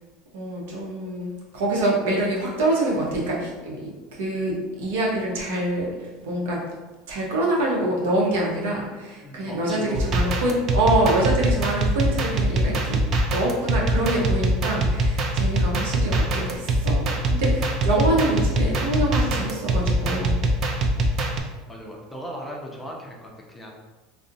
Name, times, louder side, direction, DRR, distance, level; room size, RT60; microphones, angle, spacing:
voice 1, 0.3-6.6 7.1-13.0 13.3-20.4, right 1 dB, 85° right, -3 dB, 0.7 m, -25 dB
voice 2, 9.2-10.2 21.7-23.7, equal, 10° left, -1 dB, 0.5 m, -37 dB
sound 1, 9.9-21.4, right 1 dB, 45° right, 0.3 m, -23 dB
2.5 x 2.0 x 2.6 m, 1.2 s
supercardioid pair, 105°, 0 cm